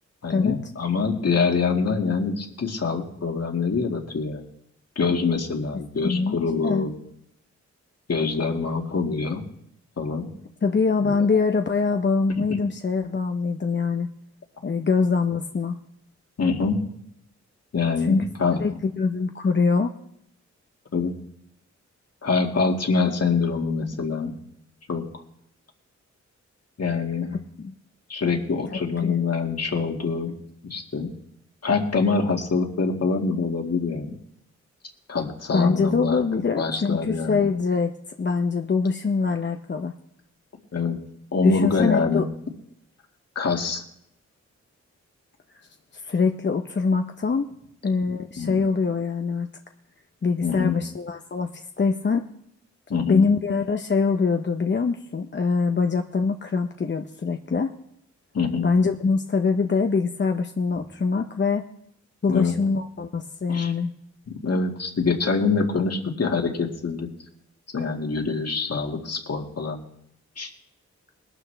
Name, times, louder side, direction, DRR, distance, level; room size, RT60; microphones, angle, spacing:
voice 1, 0.2-4.4 5.0-6.9 8.1-9.4 10.0-10.3 11.0-11.1 16.4-16.8 17.7-18.6 20.9-21.2 22.2-24.4 24.9-25.2 26.8-27.4 28.1-30.4 30.6-31.1 31.6-34.1 35.1-36.2 36.6-37.5 40.7-41.0 41.3-42.2 43.4-43.8 48.4-48.6 50.4-50.8 52.9-53.3 58.3-58.7 62.3-62.5 63.5-63.7 64.3-67.1 67.7-69.8 70.4-70.5, left 4 dB, 60° left, 2 dB, 2.1 m, -25 dB
voice 2, 6.0-6.8 10.6-14.1 14.6-15.8 18.0-18.3 18.6-18.7 19.0-19.9 27.6-27.7 28.7-29.2 35.5-37.9 38.2-39.9 41.4-42.2 45.9-47.5 47.8-49.5 50.2-52.3 53.1-57.7 58.6-61.7 62.2-63.9, left 4 dB, 40° left, 5 dB, 0.8 m, -24 dB
20.5 x 12.0 x 3.4 m, 0.75 s
cardioid pair, 75°, 29 cm